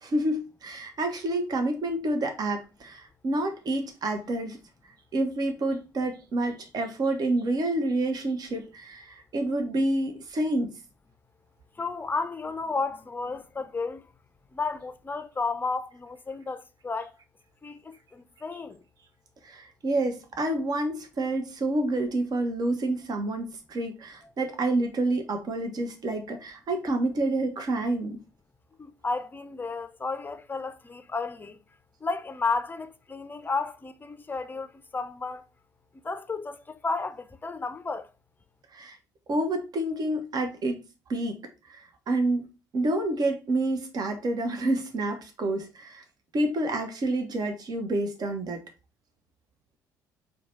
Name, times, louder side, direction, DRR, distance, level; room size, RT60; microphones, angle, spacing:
voice 1, 0.0-4.6 5.1-10.7 19.4-28.2 38.7-39.0 39.3-40.8 41.1-41.4 41.7-42.5 42.7-46.0 46.3-48.6, right 2 dB, 45° right, 0.9 m, -28 dB
voice 2, 11.8-14.1 14.5-17.1 17.6-18.8 28.8-31.6 32.0-35.5 36.0-38.1, left 4 dB, 20° left, 0.6 m, -32 dB
4.5 x 2.3 x 4.3 m
hypercardioid pair, 55°, 9 cm